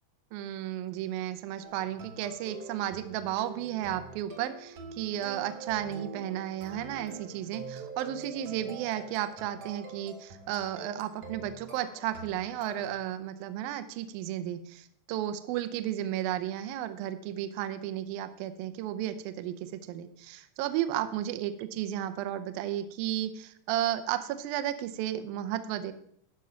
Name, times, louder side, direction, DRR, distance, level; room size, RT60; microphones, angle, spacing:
voice 1, 0.3-25.9, right 12 dB, 80° right, 10 dB, 2.2 m, -33 dB
sound 1, 1.6-13.0, right 4 dB, 55° right, 2.0 m, -45 dB
12.5 x 5.4 x 5.7 m, 0.69 s
omnidirectional pair, 4.8 m